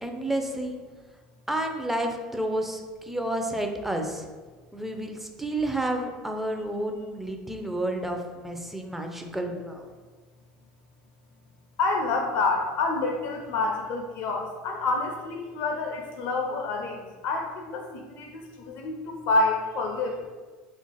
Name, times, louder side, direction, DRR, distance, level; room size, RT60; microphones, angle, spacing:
voice 1, 0.0-0.8 1.5-4.3 4.7-9.9, right 1 dB, 5° right, 3 dB, 0.5 m, -30 dB
voice 2, 11.8-20.3, left 3 dB, 55° left, 2 dB, 0.4 m, -28 dB
2.9 x 2.5 x 3.9 m, 1.4 s
hypercardioid pair, 80°, 4 cm